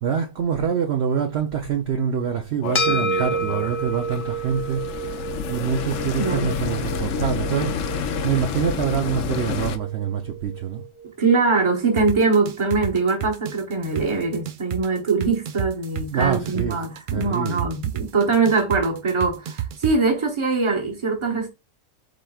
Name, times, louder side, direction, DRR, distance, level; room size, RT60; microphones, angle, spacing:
voice 1, 0.0-5.1 5.5-8.0 8.2-10.8 16.1-16.8 17.1-17.6, right 7 dB, 60° right, 0.8 m, -25 dB
sound 1, 2.6-9.8, left 6 dB, 75° left, 0.9 m, -29 dB
sound 2, 2.7-11.3, right 2 dB, 55° left, 0.3 m, -31 dB
voice 2, 6.2-6.5 11.2-21.5, right 4 dB, 25° right, 1.0 m, -22 dB
sound 3, 12.0-19.9, right 11 dB, 90° right, 0.4 m, -29 dB
5.0 x 4.4 x 2.3 m
omnidirectional pair, 1.4 m